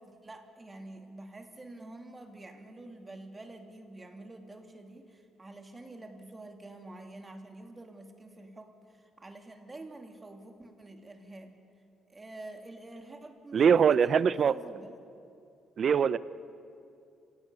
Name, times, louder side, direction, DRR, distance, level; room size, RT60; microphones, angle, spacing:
voice 1, 0.0-11.5 12.1-14.9, right 2 dB, 25° right, 4 dB, 2.9 m, -48 dB
voice 2, 13.5-14.5 15.8-16.2, right 7 dB, 55° right, 16 dB, 0.7 m, -22 dB
29.0 x 17.0 x 8.4 m, 2.5 s
cardioid pair, 90°, 0 cm